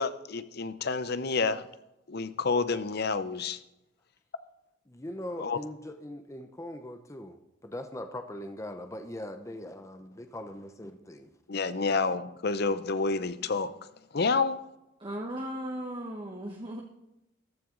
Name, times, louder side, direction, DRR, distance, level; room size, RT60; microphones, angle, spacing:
voice 1, 0.0-1.7 2.1-3.6 5.4-5.6 11.5-13.7 14.1-14.6, left 4 dB, 55° left, 13 dB, 0.7 m, -29 dB
voice 2, 4.9-11.3, left 1 dB, 15° left, 7 dB, 0.7 m, -41 dB
voice 3, 15.0-16.8, right 1 dB, 25° right, 1 dB, 1.2 m, -36 dB
14.5 x 12.5 x 3.9 m, 0.90 s
head